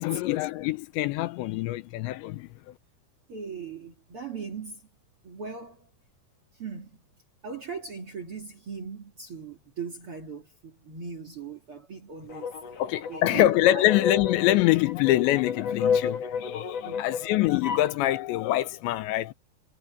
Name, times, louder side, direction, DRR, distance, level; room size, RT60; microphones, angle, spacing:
voice 1, 0.0-2.5 12.8-19.3, left 15 dB, 80° left, 3.0 m, -25 dB
voice 2, 3.3-4.8 5.2-5.9 6.6-7.0 7.4-12.8 13.1-13.4 13.7-13.9 16.8-17.2, right 5 dB, 45° right, 2.0 m, -39 dB
sound 1, 12.3-18.0, left 6 dB, 50° left, 2.2 m, -31 dB
omnidirectional pair, 5.3 m